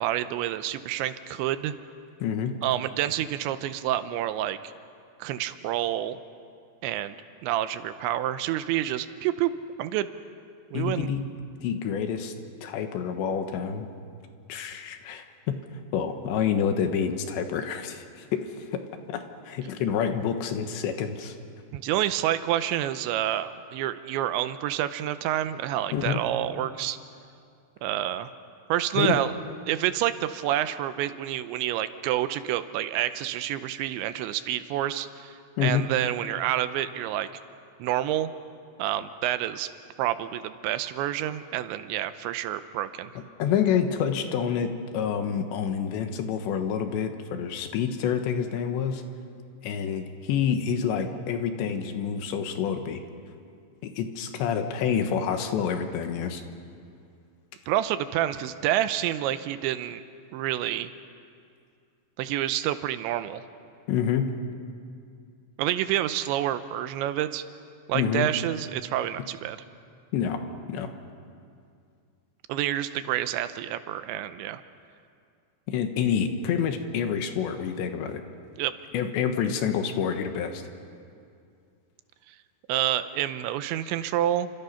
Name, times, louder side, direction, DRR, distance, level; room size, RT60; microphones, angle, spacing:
voice 1, 0.0-1.7 2.6-4.6 5.2-6.2 6.8-7.2 7.4-9.5 9.8-10.1 10.7-11.1 21.7-27.0 27.8-28.3 28.7-29.3 29.7-37.3 37.8-38.3 38.8-39.7 40.0-43.1 57.7-60.0 60.3-60.9 62.2-63.4 65.6-67.4 67.9-69.6 72.5-74.6 78.6-78.7 82.3-82.4 82.7-84.5, right 12 dB, 80° right, 11 dB, 3.0 m, -28 dB
voice 2, 2.2-2.5 10.7-11.2 11.6-12.3 12.6-13.9 14.5-15.6 15.9-18.5 19.1-21.3 25.9-26.2 28.9-29.2 35.6-35.8 43.2-49.0 49.6-53.0 53.8-56.4 63.9-64.3 67.9-68.3 70.1-70.4 70.7-70.9 75.7-78.2 78.9-80.6, left 7 dB, 75° left, 6 dB, 3.4 m, -28 dB
29.0 x 26.0 x 5.7 m, 2.3 s
omnidirectional pair, 5.4 m